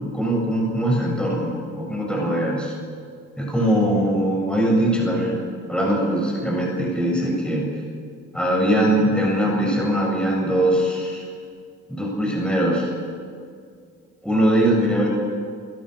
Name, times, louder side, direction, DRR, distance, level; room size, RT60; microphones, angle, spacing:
voice 1, 0.1-2.7 3.4-5.4 5.7-7.7 8.3-11.2 11.9-12.9 14.2-15.1, right 1 dB, 5° left, -2 dB, 8.0 m, -21 dB
29.5 x 17.5 x 6.6 m, 2.1 s
cardioid pair, 90°, 30 cm